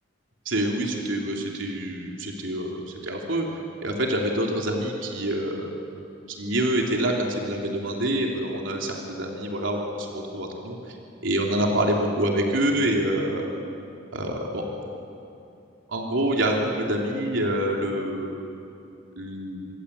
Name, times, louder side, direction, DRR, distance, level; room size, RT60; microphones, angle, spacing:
voice 1, 0.4-3.5 3.8-5.7 6.3-11.0 11.2-13.4 14.1-14.6 15.9-18.4 19.2-19.7, right 1 dB, 85° right, 0 dB, 3.3 m, -26 dB
27.5 x 23.5 x 8.4 m, 2.8 s
head